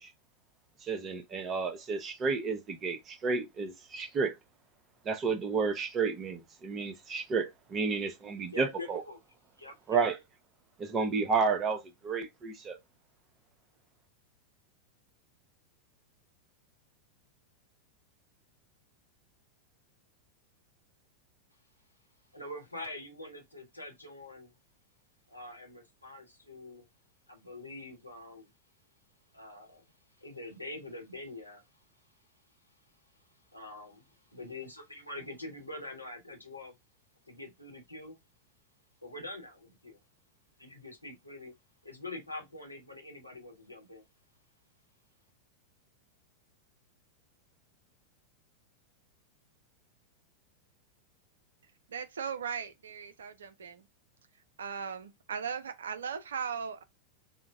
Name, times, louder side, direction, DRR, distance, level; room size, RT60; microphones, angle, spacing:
voice 1, 0.8-4.3 5.1-9.0 9.9-10.2 10.8-12.8, right 4 dB, 25° right, 0.7 m, -31 dB
voice 2, 8.5-9.2 9.6-10.0 22.3-24.5 25.3-26.9 27.3-28.5 29.3-32.2 33.2-36.7 37.3-38.2 39.0-40.0 40.6-41.5 41.8-44.0, left 2 dB, 90° left, 1.0 m, -45 dB
voice 3, 51.9-53.8 54.6-56.8, right 6 dB, 65° right, 0.5 m, -38 dB
3.8 x 2.1 x 3.5 m
figure-of-eight pair, 90°, 0 cm